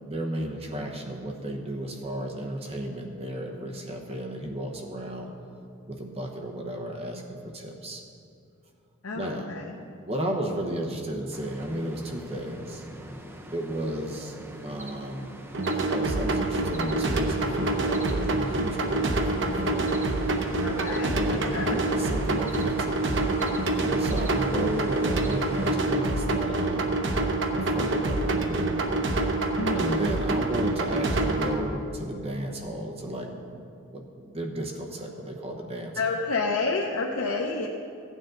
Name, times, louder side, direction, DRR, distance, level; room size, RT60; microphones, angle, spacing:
voice 1, 0.0-5.3 5.9-8.0 9.1-9.5 10.1-12.8 13.5-14.4 14.6-15.3 15.9-20.0 21.1-23.0 23.8-27.0 27.5-28.7 29.7-33.6 33.9-35.9, right 1 dB, 30° right, 1 dB, 1.0 m, -34 dB
voice 2, 9.0-9.7 20.6-21.8 29.6-30.0 36.0-37.7, left 3 dB, 80° left, -1 dB, 0.8 m, -29 dB
sound 1, 11.3-25.8, right 1 dB, 10° right, 0.7 m, -42 dB
sound 2, 15.5-31.5, right 2 dB, 60° right, 0.9 m, -26 dB
15.5 x 9.2 x 3.8 m, 2.5 s
head